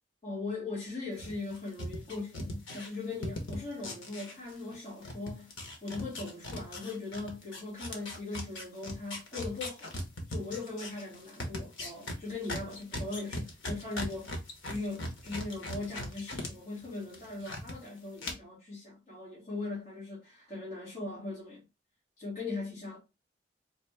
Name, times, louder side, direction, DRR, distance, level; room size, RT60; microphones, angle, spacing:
voice 1, 0.2-5.5 5.8-10.0 10.3-14.3 14.7-21.6 22.2-23.0, left 3 dB, 35° left, 1.8 m, -39 dB
sound 1, 1.2-4.8 5.0-16.5 16.8-17.7 18.2-18.3, left 1 dB, 85° left, 1.1 m, -39 dB
4.0 x 2.6 x 3.3 m
head